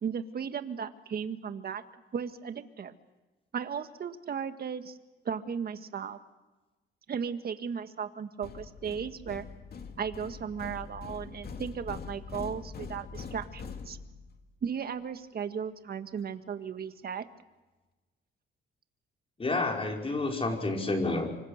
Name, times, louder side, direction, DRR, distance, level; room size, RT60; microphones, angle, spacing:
voice 1, 0.0-1.8 2.1-2.9 3.5-5.0 5.3-6.2 7.1-9.4 10.0-14.0 14.6-17.3, right 7 dB, 50° right, 9 dB, 1.7 m, -36 dB
sound 1, 8.4-14.4, left 5 dB, 50° left, 2.6 m, -43 dB
voice 2, 19.4-21.3, left 2 dB, 30° left, 1 dB, 5.3 m, -29 dB
26.0 x 25.0 x 6.7 m, 1.2 s
cardioid pair, 90°, 20 cm